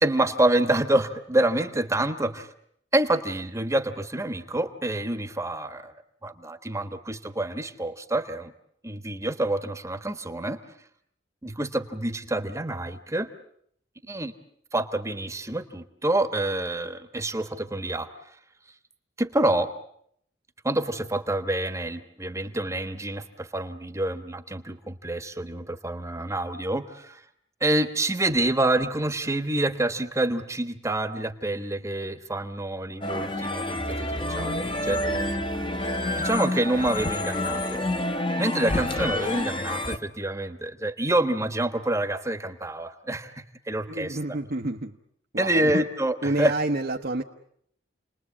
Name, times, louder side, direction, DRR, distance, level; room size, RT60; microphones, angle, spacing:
voice 1, 0.0-2.5 2.9-5.9 6.2-8.5 8.8-10.6 11.4-13.3 14.1-14.3 14.7-18.4 19.2-19.7 20.6-27.2 27.6-35.0 36.1-37.9 38.4-44.2 45.4-46.5, right 1 dB, 15° right, 9 dB, 1.3 m, -27 dB
sound 1, 33.0-40.0, left 1 dB, 30° left, 1.3 m, -28 dB
voice 2, 34.8-35.2 43.9-45.0 45.3-45.8 46.2-47.2, right 2 dB, 55° right, 2 dB, 1.1 m, -29 dB
29.5 x 20.5 x 8.5 m, 0.70 s
head